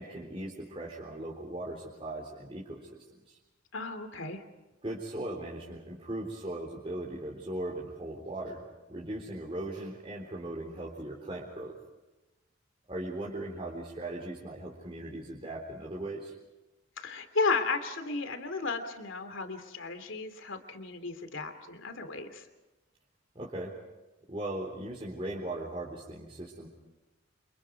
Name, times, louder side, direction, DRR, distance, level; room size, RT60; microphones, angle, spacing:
voice 1, 0.0-3.4 4.8-11.7 12.9-16.3 23.3-23.8 24.3-26.7, right 1 dB, 25° right, -3 dB, 3.9 m, -38 dB
voice 2, 3.7-4.4 17.0-22.4, left 4 dB, 70° left, 8 dB, 2.9 m, -34 dB
29.0 x 28.0 x 4.8 m, 1.1 s
head